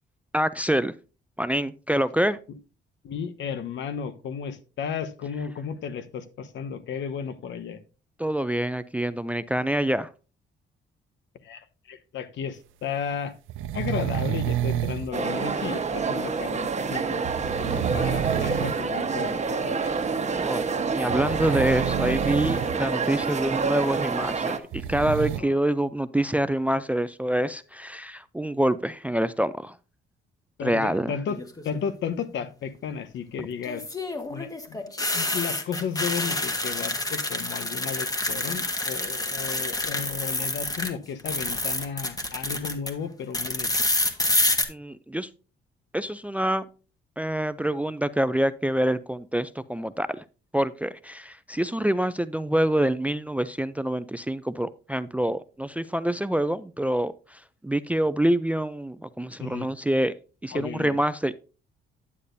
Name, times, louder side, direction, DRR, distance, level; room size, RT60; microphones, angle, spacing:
voice 1, 0.3-0.9 1.4-2.4 8.2-10.1 20.3-29.8 30.6-31.1 44.7-45.3 45.9-46.7 47.2-50.2 50.5-60.1 60.4-61.3, right 1 dB, 5° right, 0.4 m, -26 dB
voice 2, 3.0-7.8 11.4-13.3 13.7-17.2 17.6-19.9 25.3-25.5 30.6-33.8 34.3-43.8 59.4-59.7 60.5-61.0, left 7 dB, 70° left, 1.1 m, -34 dB
sound 1, 13.5-15.1 17.2-18.8 19.2-19.3 21.1-22.8 23.0-23.1 24.5-25.4, right 11 dB, 90° right, 0.6 m, -29 dB
sound 2, 15.1-24.6, right 4 dB, 35° right, 1.2 m, -27 dB
sound 3, 31.3-31.8 33.6-40.9 41.2-42.9 43.3-44.6, left 2 dB, 20° left, 1.4 m, -28 dB
9.7 x 8.4 x 2.7 m
cardioid pair, 90°, 20 cm